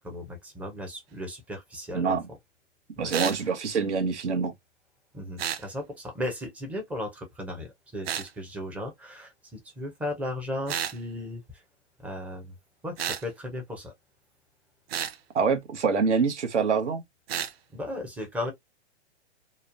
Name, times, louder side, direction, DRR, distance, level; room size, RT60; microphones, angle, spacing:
voice 1, 0.0-2.2 3.0-3.1 5.1-11.6 12.0-12.5 12.8-13.9 17.7-18.5, left 1 dB, 5° right, 0.4 m, -36 dB
voice 2, 3.0-4.5 15.3-17.0, right 5 dB, 85° right, 1.0 m, -25 dB
sound 1, 3.1-3.4 5.4-5.6 8.0-8.3 10.7-11.0 13.0-13.2 14.9-15.2 17.3-17.5, right 9 dB, 60° right, 0.6 m, -31 dB
3.0 x 2.0 x 2.4 m
hypercardioid pair, 130°, 34 cm